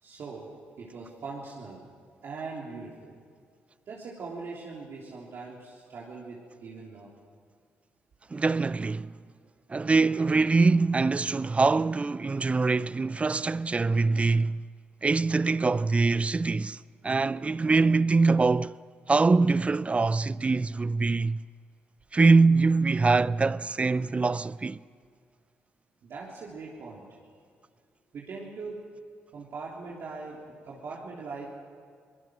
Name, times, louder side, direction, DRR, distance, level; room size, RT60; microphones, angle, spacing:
voice 1, 0.0-1.8 2.2-3.2 3.9-7.2 26.0-27.1 28.1-28.8 29.3-31.5, right 4 dB, 60° right, 3.4 m, -41 dB
voice 2, 8.3-9.1 9.7-14.6 15.0-16.8 17.0-18.7 19.1-21.4 22.1-24.8, right 3 dB, 25° right, 0.5 m, -23 dB
23.5 x 19.5 x 6.3 m
cardioid pair, 75°, 5 cm